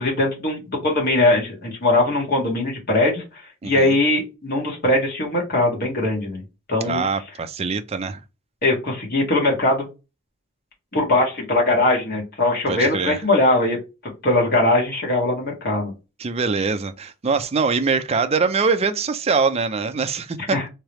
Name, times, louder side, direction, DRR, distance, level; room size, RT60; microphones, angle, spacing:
voice 1, 0.0-3.2 3.6-6.4 6.7-7.0 8.6-9.9 10.9-13.8 14.2-15.9 20.5-20.6, left 2 dB, 45° left, 1.9 m, -20 dB
voice 2, 3.6-4.0 6.8-8.2 12.7-13.2 16.2-20.6, right 4 dB, 30° right, 0.4 m, -23 dB
3.6 x 3.3 x 3.0 m
head